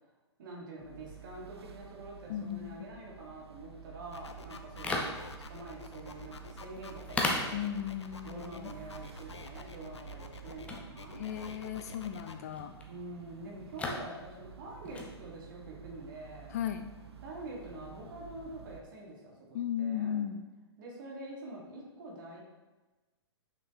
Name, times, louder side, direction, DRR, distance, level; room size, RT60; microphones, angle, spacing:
voice 1, 0.4-7.7 8.2-11.2 12.9-16.6 17.2-20.2 20.8-22.4, right 2 dB, 45° right, -2 dB, 2.1 m, -46 dB
sound 1, 0.8-18.8, right 8 dB, 65° right, 0.7 m, -51 dB
voice 2, 2.3-2.9 7.5-8.7 11.2-12.8 16.5-16.9 19.5-20.5, left 9 dB, 35° left, 8 dB, 0.3 m, -36 dB
sound 2, 4.1-12.3, left 4 dB, 75° left, 0.7 m, -48 dB
sound 3, 4.6-18.8, left 2 dB, 10° left, 0.8 m, -41 dB
7.0 x 6.0 x 3.2 m, 1.2 s
figure-of-eight pair, 115°, 14 cm